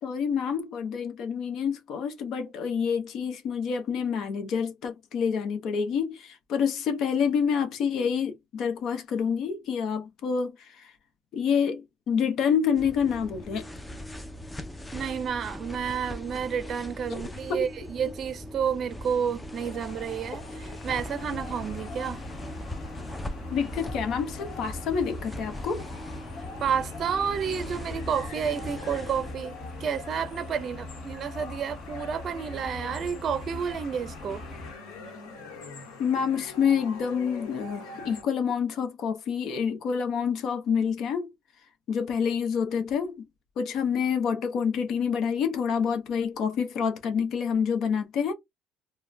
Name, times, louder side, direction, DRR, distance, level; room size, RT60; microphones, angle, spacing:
voice 1, 0.0-10.9 11.3-13.7 17.1-17.2 17.5-17.7 23.5-25.9 36.0-41.3 41.9-43.2 43.6-48.3, left 6 dB, 60° left, 0.8 m, -27 dB
sound 1, 12.8-29.4, left 1 dB, 10° left, 0.5 m, -40 dB
voice 2, 14.9-22.2 26.4-34.4, right 7 dB, 45° right, 0.5 m, -30 dB
sound 2, 19.5-38.2, left 4 dB, 85° left, 1.0 m, -45 dB
sound 3, 20.8-34.7, left 2 dB, 35° left, 1.1 m, -41 dB
2.4 x 2.2 x 3.2 m
supercardioid pair, 95°, 0 cm